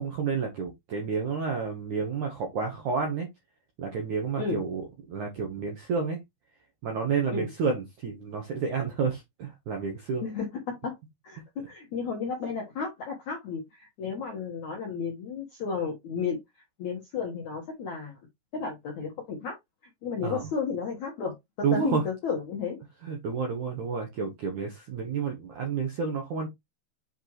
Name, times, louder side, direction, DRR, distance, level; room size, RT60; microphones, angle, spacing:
voice 1, 0.0-3.3 3.8-6.2 6.8-10.2 20.2-20.5 21.6-22.0 23.0-26.5, right 5 dB, 70° right, 1.8 m, -30 dB
voice 2, 10.2-11.0 11.2-16.4 16.8-18.2 18.5-19.5 20.0-21.4 21.7-22.8, left 5 dB, 70° left, 1.8 m, -33 dB
8.0 x 4.8 x 3.1 m
omnidirectional pair, 5.4 m